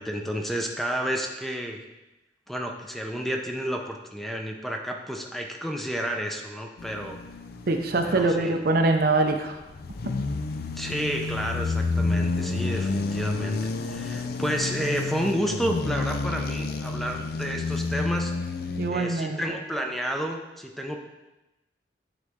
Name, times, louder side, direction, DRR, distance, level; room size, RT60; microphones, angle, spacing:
voice 1, 0.0-1.8 2.5-7.2 8.0-8.5 10.8-18.5 18.9-21.0, equal, ahead, 2 dB, 0.6 m, -31 dB
sound 1, 6.8-8.5 9.1-18.9, left 3 dB, 60° left, 0.4 m, -30 dB
voice 2, 7.7-9.6 18.8-19.4, right 2 dB, 60° right, 5 dB, 0.6 m, -23 dB
9.4 x 3.9 x 3.6 m, 1.0 s
head